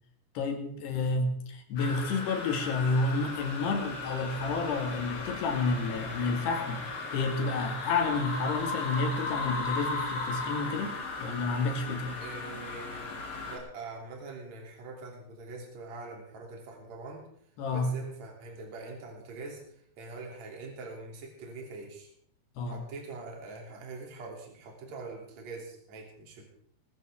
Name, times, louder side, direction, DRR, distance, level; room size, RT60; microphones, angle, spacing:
voice 1, 0.4-12.2 17.6-17.9 22.6-22.8, left 3 dB, 70° left, 3 dB, 4.2 m, -30 dB
sound 1, 1.8-13.6, left 3 dB, 55° left, 4.7 m, -36 dB
voice 2, 12.2-13.2 13.5-17.3 17.7-19.6 20.0-22.1 22.7-26.4, right 3 dB, 45° right, 0 dB, 4.1 m, -43 dB
21.5 x 15.0 x 3.7 m, 0.65 s
omnidirectional pair, 5.0 m